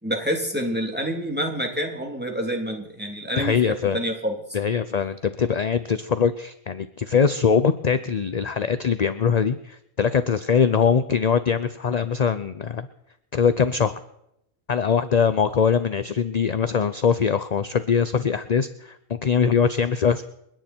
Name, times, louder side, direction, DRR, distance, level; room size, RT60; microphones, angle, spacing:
voice 1, 0.0-3.6 3.9-4.6, equal, 5° right, 1 dB, 3.2 m, -27 dB
voice 2, 3.4-4.0 4.5-12.9 13.3-13.9 14.7-20.2, left 6 dB, 40° left, 12 dB, 0.6 m, -22 dB
30.0 x 10.0 x 4.5 m, 0.80 s
omnidirectional pair, 1.4 m